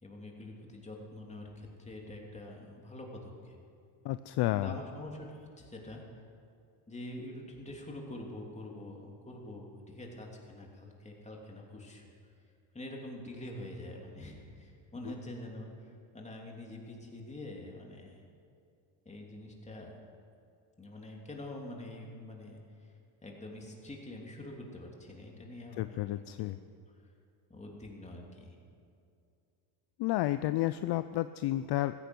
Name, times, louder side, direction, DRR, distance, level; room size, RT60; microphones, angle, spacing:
voice 1, 0.0-3.6 4.5-6.1 6.9-12.1 12.7-18.2 19.0-19.9 20.8-22.6 23.2-26.6 27.5-28.5, left 1 dB, 15° left, 0 dB, 3.0 m, -45 dB
voice 2, 4.0-4.7 15.0-15.1 25.8-26.6 30.0-31.9, left 15 dB, 55° left, 12 dB, 0.5 m, -31 dB
15.5 x 15.0 x 6.1 m, 2.5 s
cardioid pair, 120°, 48 cm